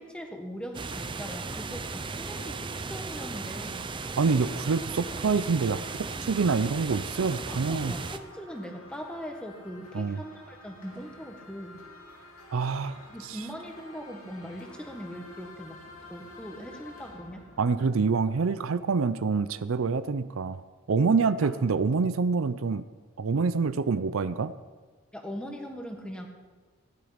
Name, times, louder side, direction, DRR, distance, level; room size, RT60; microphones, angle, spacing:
voice 1, 0.0-3.8 7.5-11.8 13.1-15.8 16.1-17.4 21.4-21.5 25.1-26.3, equal, 5° left, 3 dB, 1.5 m, -40 dB
sound 1, 0.7-8.2, right 4 dB, 25° right, 0.5 m, -36 dB
sound 2, 2.2-18.9, left 2 dB, 85° left, 3.0 m, -52 dB
voice 2, 4.2-7.9 9.9-10.2 12.5-13.0 17.6-20.6 20.9-22.8 23.2-24.5, right 4 dB, 70° right, 14 dB, 0.5 m, -26 dB
16.0 x 11.0 x 5.1 m, 1.4 s
head